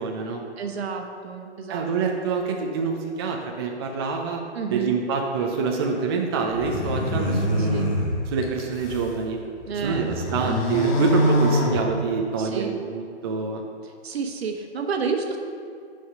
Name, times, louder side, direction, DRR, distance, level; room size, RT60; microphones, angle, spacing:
voice 1, 0.0-0.4 1.7-4.4 4.7-7.9 8.3-9.4 9.8-13.6, right 5 dB, 20° right, 1 dB, 0.4 m, -26 dB
voice 2, 0.6-1.8 4.5-5.0 7.6-7.9 9.6-10.2 12.4-12.7 13.8-15.4, right 5 dB, 60° right, 4 dB, 1.2 m, -30 dB
sound 1, 6.5-9.1 9.6-12.4, left 1 dB, 30° left, 1.2 m, -25 dB
9.7 x 4.9 x 5.4 m, 2.3 s
hypercardioid pair, 140°, 35 cm